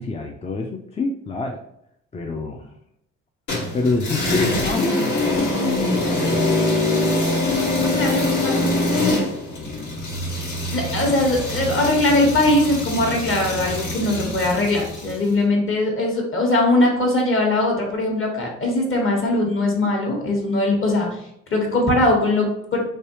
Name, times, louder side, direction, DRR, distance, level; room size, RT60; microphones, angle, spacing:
voice 1, 0.0-1.6 2.1-2.7 3.7-5.4 6.0-6.7, left 3 dB, 20° left, 1 dB, 0.3 m, -26 dB
sound 1, 3.5-15.2, left 2 dB, 90° left, 1.3 m, -24 dB
voice 2, 7.8-9.3 10.7-21.1 21.5-22.8, left 2 dB, 45° left, 0 dB, 1.1 m, -21 dB
3.2 x 2.7 x 2.9 m, 0.77 s
cardioid pair, 90°, 30 cm